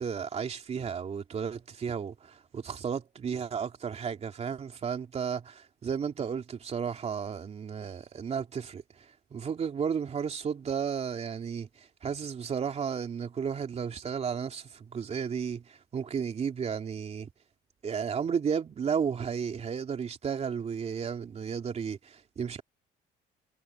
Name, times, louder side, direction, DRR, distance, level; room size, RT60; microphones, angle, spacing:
voice 1, 0.0-17.3 17.8-22.6, right 7 dB, 40° right, 3.1 m, -33 dB
cardioid pair, 110°, 17 cm